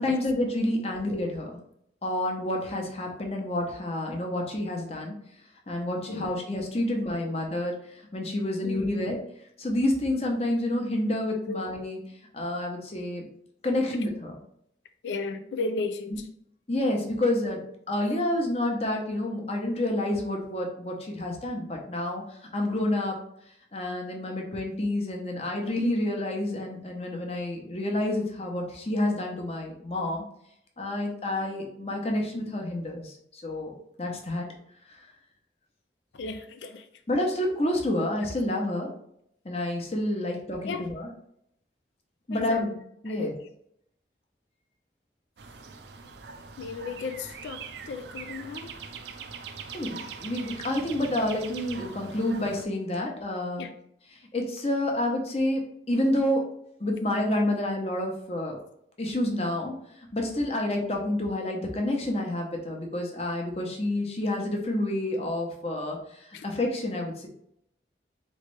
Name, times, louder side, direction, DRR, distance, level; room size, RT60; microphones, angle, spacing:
voice 1, 0.0-1.6 2.0-5.1 5.7-9.2 9.6-12.0 12.3-13.2 13.6-14.4 16.7-23.2 23.5-30.2 30.8-34.5 34.9-35.1 37.1-38.9 39.4-41.1 42.3-42.7 43.0-43.3 49.7-53.6 54.3-56.4 56.8-58.6 59.0-67.3, left 1 dB, 35° left, 1 dB, 0.8 m, -29 dB
voice 2, 6.1-6.4 7.2-7.3 8.6-9.0 11.5-11.6 14.0-14.1 15.0-16.3 36.1-36.9 40.6-40.9 42.3-42.6 43.1-43.4 46.6-48.7 53.6-53.7 66.3-66.4, left 3 dB, 90° left, 8 dB, 0.4 m, -35 dB
sound 1, 45.4-52.7, right 5 dB, 80° right, 0.5 m, -42 dB
4.1 x 3.2 x 3.2 m, 0.73 s
head